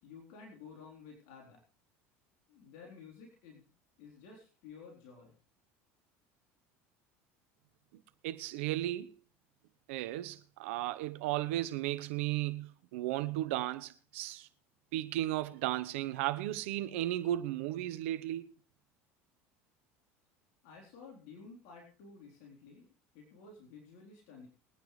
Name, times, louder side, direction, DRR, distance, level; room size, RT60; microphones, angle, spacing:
voice 1, 0.0-1.6 2.5-3.7 4.0-5.4 20.6-24.5, left 5 dB, 70° left, 3.9 m, -53 dB
voice 2, 8.2-9.1 9.9-14.5 14.9-18.5, right 14 dB, 80° right, 1.0 m, -35 dB
22.5 x 9.3 x 3.3 m
hypercardioid pair, 90°, 7 cm